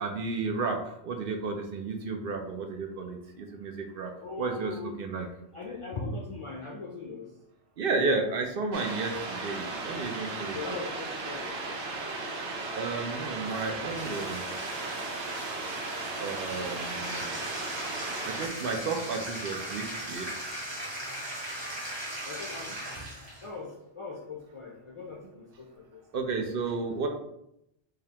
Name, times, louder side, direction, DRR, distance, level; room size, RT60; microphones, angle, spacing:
voice 1, 0.0-4.1 4.4-5.3 7.8-10.8 12.8-14.4 16.2-17.3 18.2-20.3 26.1-27.1, right 4 dB, 65° right, 4 dB, 0.7 m, -32 dB
voice 2, 4.2-5.0 5.5-7.3 10.5-11.5 22.2-22.7 23.4-26.0, left 3 dB, 45° left, -3 dB, 0.4 m, -40 dB
sound 1, 8.7-18.5, right 3 dB, 80° right, 1.0 m, -36 dB
Bathtub (filling or washing), 13.5-23.5, right 1 dB, 25° right, 0.9 m, -39 dB
5.0 x 2.4 x 2.8 m, 0.79 s
omnidirectional pair, 1.1 m